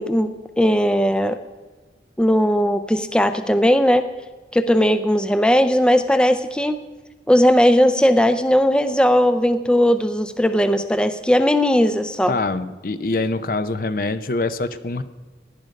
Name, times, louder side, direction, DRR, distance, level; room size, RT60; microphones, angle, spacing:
voice 1, 0.0-1.4 2.2-4.0 4.5-6.8 7.3-12.3, equal, 5° left, 10 dB, 0.5 m, -18 dB
voice 2, 12.3-15.0, left 2 dB, 50° left, 12 dB, 0.6 m, -24 dB
17.0 x 11.0 x 5.2 m, 1.3 s
head